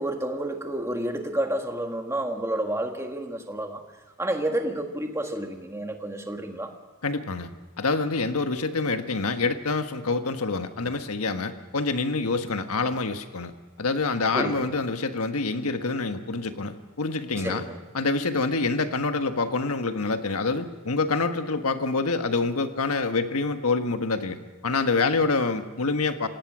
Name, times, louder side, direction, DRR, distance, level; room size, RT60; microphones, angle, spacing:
voice 1, 0.0-3.8 4.2-6.7 14.3-14.8 17.4-17.8, right 1 dB, 10° right, 4 dB, 1.7 m, -30 dB
voice 2, 7.0-7.5 7.8-13.5 13.8-17.6 17.9-26.3, left 3 dB, 80° left, 7 dB, 1.4 m, -26 dB
27.0 x 17.5 x 6.2 m, 1.2 s
head